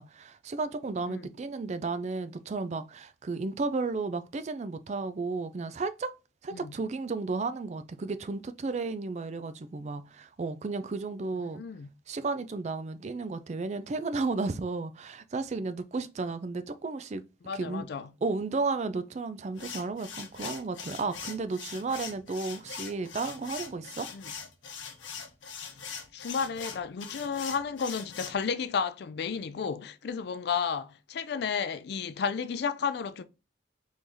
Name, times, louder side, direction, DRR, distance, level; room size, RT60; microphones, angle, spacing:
voice 1, 0.0-6.1 6.4-11.6 12.1-17.2 17.5-17.9 18.2-24.1, right 3 dB, 35° right, 0.4 m, -33 dB
voice 2, 11.6-11.9 17.5-18.1 24.1-24.2 26.1-33.2, left 6 dB, 60° left, 0.4 m, -32 dB
sound 1, 19.6-28.4, left 6 dB, 80° left, 0.8 m, -42 dB
3.7 x 3.1 x 2.6 m
head